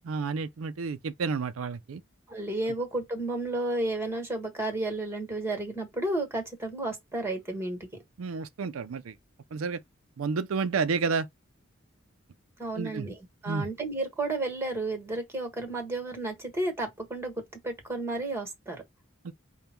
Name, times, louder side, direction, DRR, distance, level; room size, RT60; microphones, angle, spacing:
voice 1, 0.1-2.0 8.2-9.2 9.5-9.8 10.2-11.3 12.7-13.1 13.5-13.7 19.2-19.3, right 5 dB, 85° right, 0.5 m, -30 dB
voice 2, 2.3-7.9 12.6-18.8, right 2 dB, 10° right, 1.5 m, -32 dB
5.2 x 2.3 x 4.4 m
head